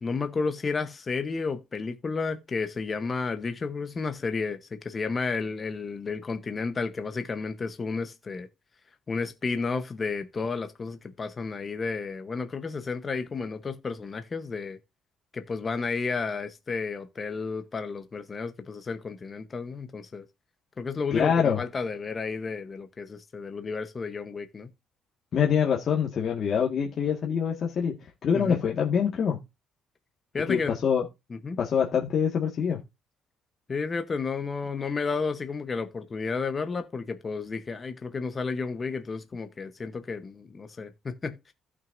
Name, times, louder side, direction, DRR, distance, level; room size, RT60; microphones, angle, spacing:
voice 1, 0.0-8.5 9.1-14.8 15.3-20.2 20.8-24.7 28.3-28.6 30.3-30.7 31.3-31.6 33.7-41.5, left 4 dB, 25° left, 0.9 m, -32 dB
voice 2, 21.1-21.6 25.3-27.9 28.2-29.4 30.5-31.0 31.6-32.8, left 7 dB, 45° left, 1.6 m, -25 dB
15.5 x 6.1 x 2.5 m
cardioid pair, 140°, 0 cm